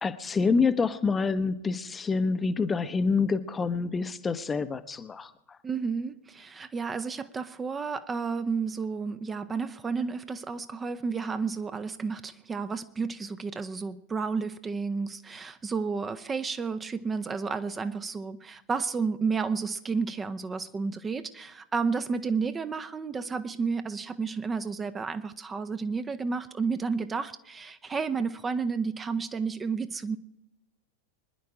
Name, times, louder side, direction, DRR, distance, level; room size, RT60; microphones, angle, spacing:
voice 1, 0.0-5.6, left 4 dB, 15° left, 11 dB, 0.9 m, -27 dB
voice 2, 5.6-30.2, right 5 dB, 15° right, 10 dB, 0.8 m, -31 dB
25.5 x 10.5 x 4.9 m, 0.88 s
figure-of-eight pair, 90°, 0 cm